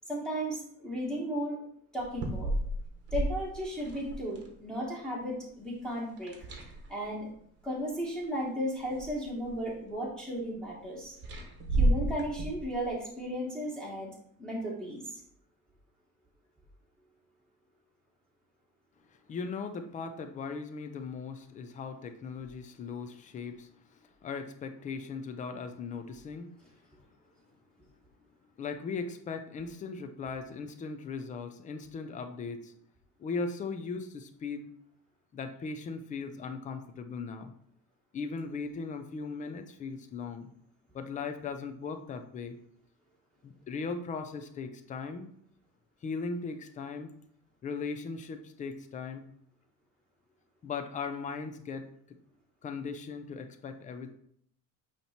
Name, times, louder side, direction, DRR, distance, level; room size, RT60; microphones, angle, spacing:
voice 1, 0.1-1.6 1.9-2.5 3.1-6.4 6.9-7.3 7.6-11.2 11.7-15.2, equal, ahead, -5 dB, 1.1 m, -35 dB
sound 1, 2.0-4.5 6.2-7.1 8.2-8.3 8.8-9.6 11.2-12.9, right 1 dB, 30° right, 1.0 m, -31 dB
voice 2, 19.1-26.5 28.6-32.7 33.2-34.7 35.3-37.5 38.1-40.5 40.9-42.6 43.4-45.3 46.0-47.1 47.6-49.3 50.6-52.2 52.6-54.1, left 4 dB, 20° left, 8 dB, 0.4 m, -38 dB
8.9 x 3.0 x 4.2 m, 0.66 s
cardioid pair, 180°, 37 cm